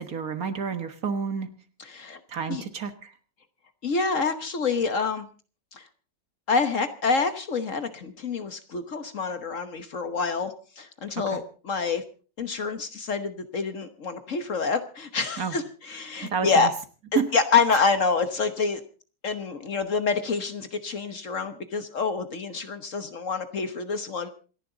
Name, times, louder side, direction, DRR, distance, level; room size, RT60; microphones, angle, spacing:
voice 1, 0.0-1.5 2.3-3.1 11.3-11.4 15.4-15.5 16.2-16.7 17.1-17.3, right 6 dB, 55° right, 9 dB, 1.8 m, -29 dB
voice 2, 1.9-2.2 2.5-2.6 3.8-5.3 5.7-5.9 6.5-12.0 12.4-16.7 17.1-18.8 19.2-24.3, left 4 dB, 50° left, 10 dB, 1.4 m, -27 dB
27.0 x 11.0 x 3.9 m, 0.38 s
omnidirectional pair, 1.9 m